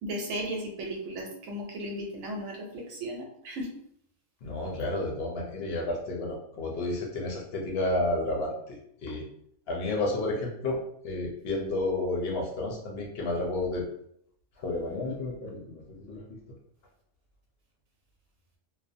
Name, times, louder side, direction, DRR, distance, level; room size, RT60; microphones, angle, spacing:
voice 1, 0.0-3.7, right 1 dB, 80° right, 0 dB, 1.0 m, -35 dB
voice 2, 4.4-9.2 9.7-10.8 11.0-13.8 14.6-16.4, left 2 dB, 60° left, -1 dB, 0.6 m, -31 dB
2.5 x 2.0 x 2.5 m, 0.70 s
omnidirectional pair, 1.4 m